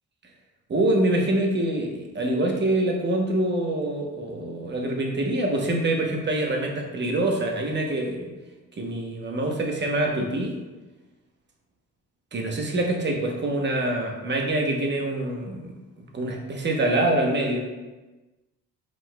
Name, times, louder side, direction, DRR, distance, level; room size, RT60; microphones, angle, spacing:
voice 1, 0.7-8.3 8.8-10.6 12.3-17.6, right 1 dB, 35° right, 1 dB, 0.9 m, -25 dB
4.9 x 3.9 x 2.2 m, 1.2 s
cardioid pair, 90°, 30 cm